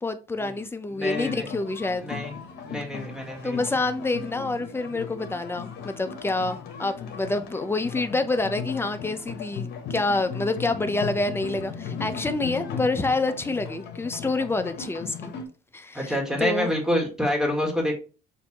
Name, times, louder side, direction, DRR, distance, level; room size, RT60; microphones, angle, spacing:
voice 1, 0.0-2.1 3.4-15.3 15.7-16.7, left 3 dB, 15° left, 0.6 m, -27 dB
voice 2, 0.9-1.5 2.0-2.3 2.6-3.6 15.9-18.0, equal, 5° right, 1.6 m, -27 dB
sound 1, 1.0-15.5, left 6 dB, 75° left, 1.1 m, -37 dB
6.7 x 2.7 x 2.9 m
cardioid pair, 110°, 17 cm